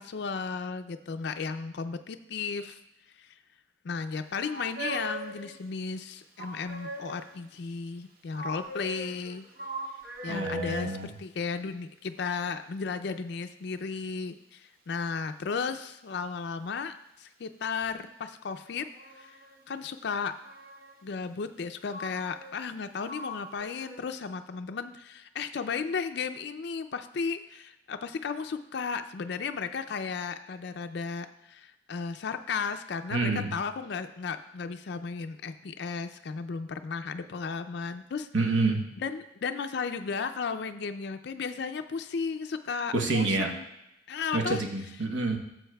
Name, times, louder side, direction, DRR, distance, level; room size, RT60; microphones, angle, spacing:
voice 1, 0.0-2.8 3.2-3.3 3.8-9.4 10.2-18.8 19.2-19.4 19.7-20.3 21.0-38.3 39.0-43.7 44.1-44.6, left 5 dB, 60° left, 8 dB, 0.4 m, -34 dB
sound 1, 4.5-5.6 6.4-7.4 8.3-11.0 17.8-17.9 18.7-19.6 20.2-21.1 21.9-22.8 23.0-24.0, right 1 dB, 50° right, 1.0 m, -40 dB
voice 2, 10.3-11.1 33.1-33.5 38.3-38.8 42.9-43.5 44.3-45.4, right 3 dB, 80° right, 3 dB, 1.1 m, -27 dB
12.5 x 7.7 x 2.3 m, 0.87 s
head